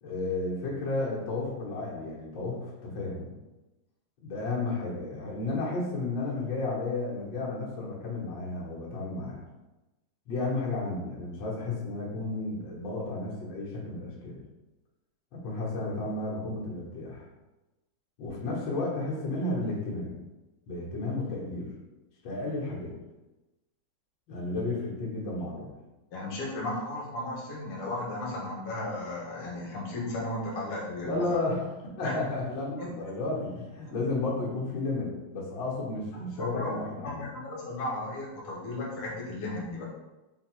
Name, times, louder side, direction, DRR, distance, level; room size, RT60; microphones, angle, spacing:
voice 1, 0.0-3.3 4.2-9.4 10.3-14.4 15.3-17.2 18.2-20.2 20.7-21.7 22.2-22.9 24.3-25.7 31.0-31.6 32.0-37.2, left 2 dB, 65° left, -5 dB, 1.8 m, -32 dB
voice 2, 26.1-31.4 32.0-32.1 32.8-32.9 36.1-39.9, left 2 dB, 85° left, -4 dB, 1.9 m, -35 dB
5.1 x 2.3 x 4.4 m, 1.1 s
omnidirectional pair, 2.4 m